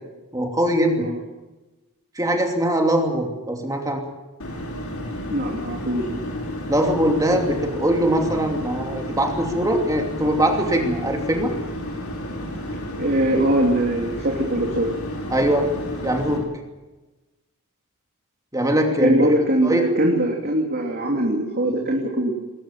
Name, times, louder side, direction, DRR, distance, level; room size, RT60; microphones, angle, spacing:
voice 1, 0.3-1.1 2.1-4.0 6.7-11.5 15.3-15.7 16.0-16.4 18.5-19.3 19.6-19.8, right 1 dB, 15° right, 2 dB, 2.8 m, -21 dB
sound 1, 4.4-16.4, equal, 70° left, 5.8 m, -31 dB
voice 2, 5.3-6.2 13.0-14.9 19.0-22.4, right 1 dB, 45° right, 0 dB, 3.0 m, -22 dB
22.0 x 20.0 x 7.4 m, 1.1 s
head